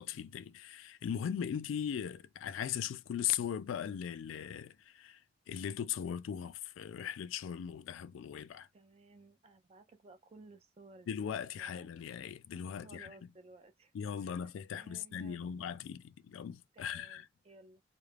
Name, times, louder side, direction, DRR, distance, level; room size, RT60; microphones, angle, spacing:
voice 1, 0.0-5.2 5.5-8.7 11.1-13.1 13.9-17.3, left 8 dB, 80° left, 0.3 m, -39 dB
voice 2, 8.7-11.3 11.6-11.9 12.7-13.9 14.2-15.6 16.7-17.8, right 2 dB, 30° right, 0.4 m, -58 dB
2.4 x 2.1 x 3.2 m
head